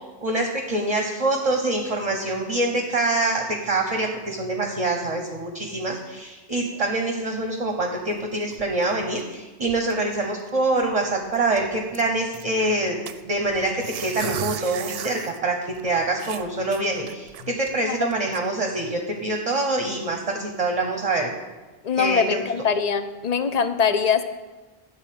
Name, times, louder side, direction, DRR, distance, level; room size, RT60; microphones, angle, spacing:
voice 1, 0.2-13.0 13.2-21.3 22.0-22.4, right 2 dB, 40° right, 3 dB, 0.9 m, -25 dB
sound 1, 8.0-9.4 9.6-10.1 10.5-10.6 10.8-11.0 11.3-12.5 13.1-15.4 15.8-15.9 16.2-17.7 18.1-18.4, right 8 dB, 75° right, 0.8 m, -35 dB
voice 2, 21.8-24.2, left 6 dB, 50° left, 10 dB, 0.6 m, -23 dB
11.0 x 4.0 x 7.5 m, 1.2 s
omnidirectional pair, 1.0 m